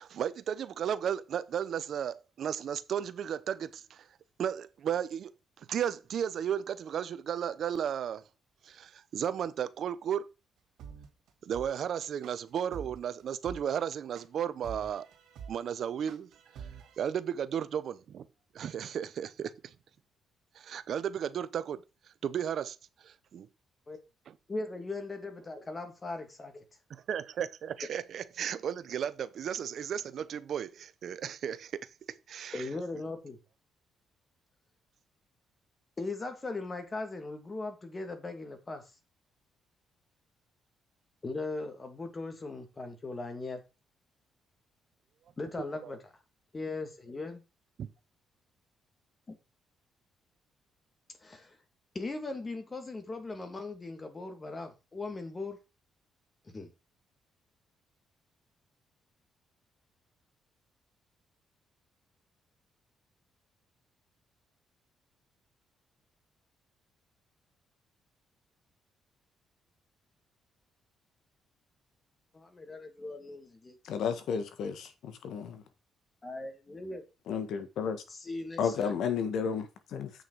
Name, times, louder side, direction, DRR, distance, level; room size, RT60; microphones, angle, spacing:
voice 1, 0.0-4.1 4.4-5.3 5.6-8.2 8.6-10.3 11.4-15.1 15.5-16.3 17.0-18.3 18.5-19.7 20.5-21.8 22.2-22.8 23.0-23.5 24.3-24.4 26.9-31.8 32.1-32.6 45.8-45.9 47.8-47.9, right 9 dB, 65° right, 0.8 m, -34 dB
sound 1, 10.8-17.0, right 6 dB, 80° right, 2.5 m, -46 dB
voice 2, 24.5-26.6 32.5-33.4 36.0-38.8 41.2-43.6 45.4-46.0 46.5-47.4 49.3-49.4 51.2-51.6 51.9-55.6 56.5-56.7 72.3-73.8 76.2-77.0 78.1-78.9, left 3 dB, 30° left, 2.4 m, -39 dB
voice 3, 73.8-75.6 77.3-78.0 78.6-80.1, left 6 dB, 75° left, 1.5 m, -32 dB
8.1 x 6.3 x 4.8 m
cardioid pair, 90°, 0 cm